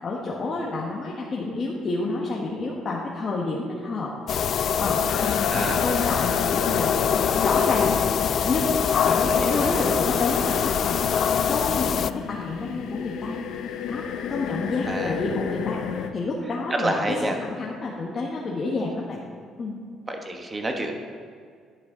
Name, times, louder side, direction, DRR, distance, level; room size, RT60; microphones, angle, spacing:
voice 1, 0.0-4.1 4.6-7.0 7.3-7.9 8.4-11.2 11.5-13.4 13.9-19.2 19.6-19.8, left 3 dB, 35° left, -3 dB, 1.5 m, -29 dB
sound 1, 4.3-12.1, left 7 dB, 50° left, 0.3 m, -24 dB
sound 2, 5.1-16.1, left 7 dB, 75° left, 0.8 m, -32 dB
voice 2, 5.5-5.8 9.0-9.9 14.8-15.2 16.7-17.4 20.1-20.9, right 2 dB, 20° right, 3 dB, 1.4 m, -29 dB
12.0 x 10.5 x 4.0 m, 2.1 s
cardioid pair, 115°, 0 cm